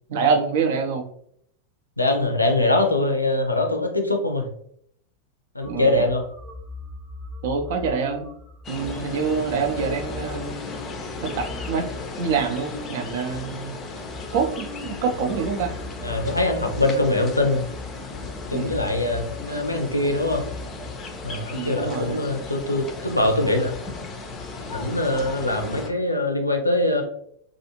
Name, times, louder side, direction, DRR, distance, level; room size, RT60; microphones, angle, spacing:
voice 1, 0.1-1.1 5.7-6.1 7.4-8.3 8.7-10.6 11.2-11.9 12.2-13.8 14.3-15.7 18.5-18.8 21.5-22.2, right 5 dB, 55° right, 5 dB, 0.5 m, -26 dB
voice 2, 2.0-4.4 5.5-6.2 16.0-17.6 18.5-20.4 21.2-23.7 24.7-27.0, left 2 dB, 85° left, 3 dB, 0.5 m, -23 dB
sound 1, 5.6-13.0 13.7-13.8 14.0-21.3, left 3 dB, 15° right, 0.8 m, -40 dB
sound 2, 8.6-25.9, left 3 dB, 25° left, 0.4 m, -36 dB
2.5 x 2.4 x 2.8 m, 0.67 s
figure-of-eight pair, 90°, 0 cm